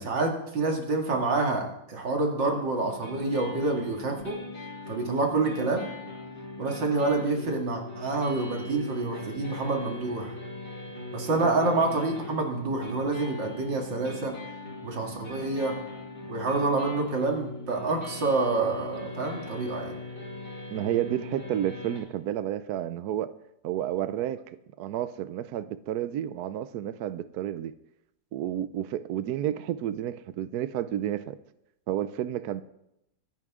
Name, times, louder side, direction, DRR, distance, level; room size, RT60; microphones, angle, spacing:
voice 1, 0.0-4.4 4.9-5.9 6.6-10.3 11.1-14.3 14.8-15.8 16.3-19.9, right 3 dB, 85° right, 1 dB, 3.0 m, -27 dB
sound 1, 2.4-22.0, left 2 dB, 70° left, 5.6 m, -40 dB
voice 2, 20.7-23.3 23.6-24.4 24.8-27.7 28.3-31.4 31.9-32.6, right 11 dB, 70° right, 13 dB, 1.0 m, -31 dB
23.5 x 10.0 x 3.7 m, 0.82 s
omnidirectional pair, 1.9 m